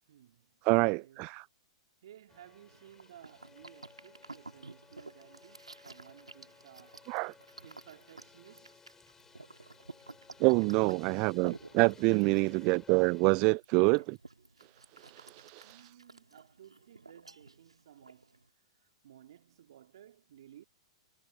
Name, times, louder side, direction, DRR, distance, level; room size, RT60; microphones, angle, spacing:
voice 1, 0.1-1.3 2.0-7.1 7.6-8.8 15.1-18.4 19.0-20.6, right 11 dB, 60° right, 3.4 m, -57 dB
voice 2, 0.6-1.5 7.1-7.3 10.4-14.2 15.0-15.8, right 30 dB, 40° right, 0.6 m, -27 dB
sound 1, 2.3-13.5, left 5 dB, 15° left, 4.5 m, -59 dB
sound 2, 2.7-18.5, right 3 dB, 85° right, 2.9 m, -53 dB
figure-of-eight pair, 105°, 3 cm